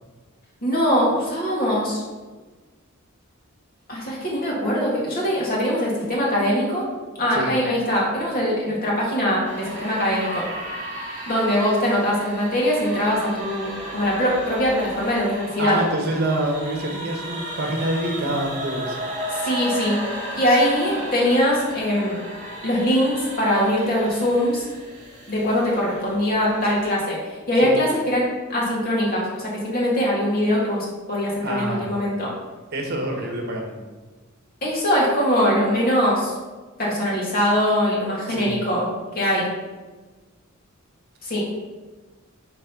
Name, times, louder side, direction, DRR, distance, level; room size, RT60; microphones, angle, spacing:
voice 1, 0.6-2.0 3.9-6.8 7.2-10.5 11.3-15.8 19.3-20.0 20.3-22.2 22.6-24.7 25.3-28.2 28.5-32.3 34.6-36.3 36.8-38.8 39.1-39.5 41.2-41.4, equal, 45° left, -5 dB, 2.3 m, -22 dB
sound 1, 9.4-26.9, right 1 dB, 35° right, 2.3 m, -34 dB
voice 2, 15.6-19.0 27.6-27.7 31.4-31.9 32.7-33.7 38.3-38.5, right 1 dB, 50° right, 1 dB, 1.1 m, -26 dB
6.4 x 4.1 x 5.8 m, 1.3 s
head